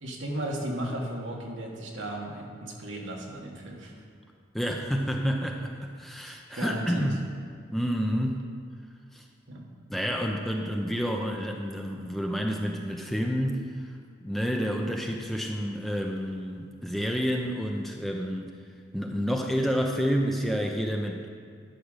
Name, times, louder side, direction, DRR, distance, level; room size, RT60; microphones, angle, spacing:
voice 1, 0.0-3.9 6.5-7.1 9.5-9.6, right 1 dB, 70° right, -1 dB, 1.5 m, -35 dB
voice 2, 4.5-7.2 7.7-8.4 9.1-9.2 9.9-13.9 14.2-18.5 18.9-21.3, equal, ahead, 1 dB, 0.5 m, -29 dB
11.0 x 5.0 x 6.6 m, 2.1 s
head